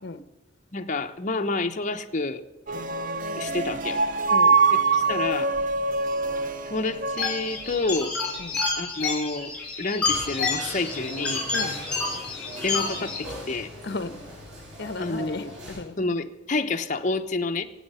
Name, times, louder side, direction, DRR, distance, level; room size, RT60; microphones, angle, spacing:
voice 1, 0.7-2.4 2.7-2.8 3.3-4.0 4.9-5.6 6.7-8.1 8.8-11.4 12.6-13.7 15.0-15.6 16.0-17.6, left 3 dB, 40° left, 1.0 m, -29 dB
sound 1, 2.7-8.0, right 4 dB, 40° right, 0.6 m, -24 dB
voice 2, 4.3-4.6 8.4-8.6 11.5-11.8 13.8-14.2 14.8-16.0, left 3 dB, 60° left, 1.0 m, -35 dB
sound 2, 7.2-13.2, left 4 dB, 5° left, 5.3 m, -29 dB
sound 3, 10.0-15.8, equal, 75° right, 6.6 m, -40 dB
24.5 x 9.0 x 5.7 m
head